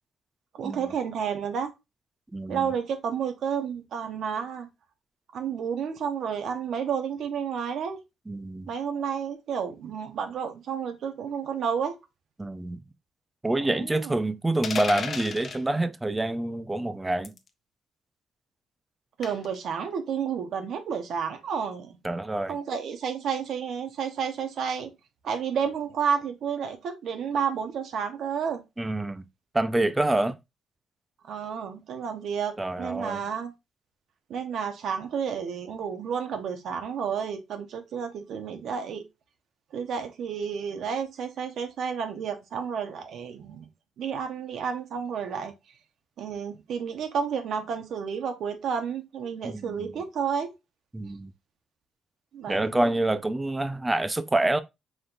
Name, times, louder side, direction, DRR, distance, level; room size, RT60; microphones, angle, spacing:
voice 1, 0.5-1.7 2.5-4.7 5.3-8.0 8.7-11.9 13.6-14.2 19.2-22.0 22.5-24.9 25.2-28.6 31.2-33.5 34.3-39.0 39.7-43.7 44.0-45.5 46.2-50.5 52.3-53.0, right 7 dB, 70° right, 1.0 m, -31 dB
voice 2, 2.3-2.7 8.3-8.7 12.4-12.8 13.4-17.3 22.0-22.6 28.8-29.3 29.5-30.4 32.6-33.2 49.4-49.9 50.9-51.3 52.5-54.6, right 2 dB, 15° right, 0.5 m, -27 dB
sound 1, 14.6-15.6 17.2-17.5 19.2-19.6, left 6 dB, 50° left, 0.7 m, -33 dB
5.0 x 3.8 x 2.6 m
cardioid pair, 90°, 0 cm